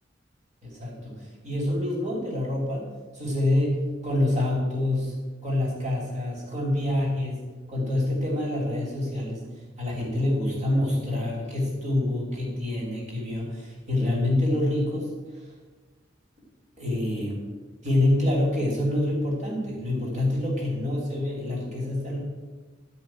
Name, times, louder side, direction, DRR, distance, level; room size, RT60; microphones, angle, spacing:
voice 1, 0.6-1.2 1.4-2.9 3.1-5.1 5.4-7.4 7.7-9.4 9.8-15.1 16.8-17.4 17.8-22.2, left 1 dB, 40° right, -3 dB, 3.2 m, -26 dB
12.5 x 5.3 x 8.9 m, 1.3 s
head